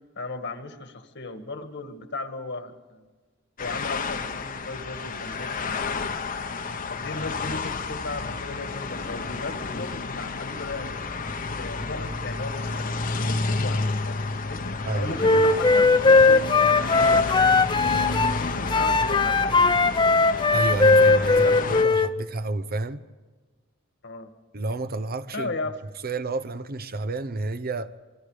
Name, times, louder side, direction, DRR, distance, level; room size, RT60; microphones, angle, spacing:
voice 1, 0.2-3.1 3.6-6.1 6.9-11.0 11.5-14.6 14.9-20.0 21.2-22.0 24.0-24.3 25.3-25.8, left 3 dB, 60° left, 1.9 m, -36 dB
sound 1, 3.6-21.9, left 3 dB, 45° left, 1.1 m, -30 dB
voice 2, 14.9-15.4 20.5-23.0 24.5-25.5 26.0-28.0, right 2 dB, 50° right, 0.9 m, -30 dB
Wind instrument woodwind instrument, 15.2-18.4 18.7-22.1, left 3 dB, 25° left, 0.6 m, -19 dB
27.5 x 23.0 x 5.0 m
head